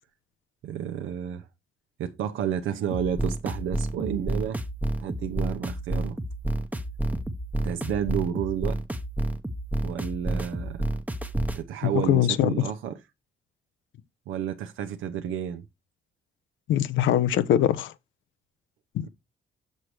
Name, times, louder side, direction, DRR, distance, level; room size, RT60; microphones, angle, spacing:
voice 1, 0.6-1.5 2.0-4.6 5.0-6.2 7.6-8.8 9.8-10.8 11.5-13.0 14.3-15.6 19.0-19.1, right 9 dB, 80° right, 0.7 m, -31 dB
sound 1, 2.9-11.6, right 1 dB, 10° right, 0.7 m, -30 dB
voice 2, 11.8-12.5 16.7-17.9 18.9-19.0, left 11 dB, 80° left, 0.7 m, -22 dB
6.4 x 6.4 x 3.0 m
cardioid pair, 90°, 20 cm